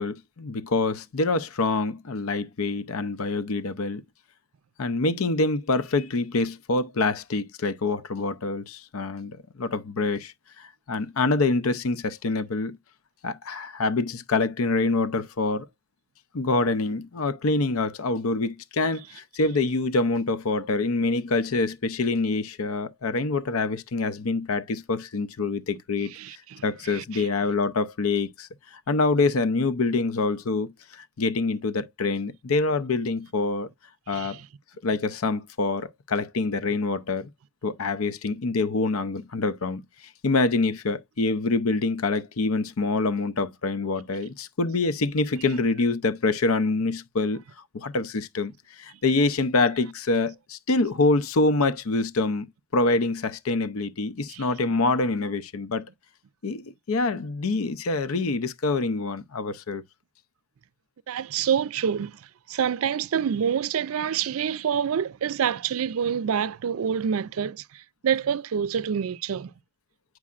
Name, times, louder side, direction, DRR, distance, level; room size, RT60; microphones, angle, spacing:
voice 1, 0.0-4.0 4.8-12.8 13.2-15.7 16.3-26.1 26.6-33.7 34.1-34.4 34.8-37.3 37.6-39.8 40.2-47.4 47.7-48.5 48.8-52.5 52.7-55.9 56.4-59.8, left 3 dB, 90° left, 0.6 m, -26 dB
voice 2, 26.1-27.3 34.1-34.5 54.3-54.5 61.1-62.2 62.5-69.5, right 8 dB, 85° right, 0.4 m, -27 dB
8.5 x 4.8 x 2.4 m
head